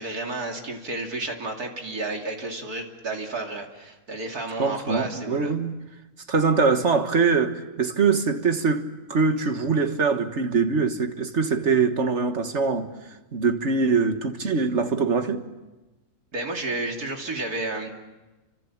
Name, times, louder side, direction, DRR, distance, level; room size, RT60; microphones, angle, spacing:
voice 1, 0.0-5.5 16.3-17.9, right 2 dB, 85° right, 3.4 m, -31 dB
voice 2, 4.6-5.7 6.3-12.9 13.3-15.4, right 4 dB, 50° right, 1.8 m, -23 dB
29.5 x 25.5 x 7.4 m
omnidirectional pair, 1.6 m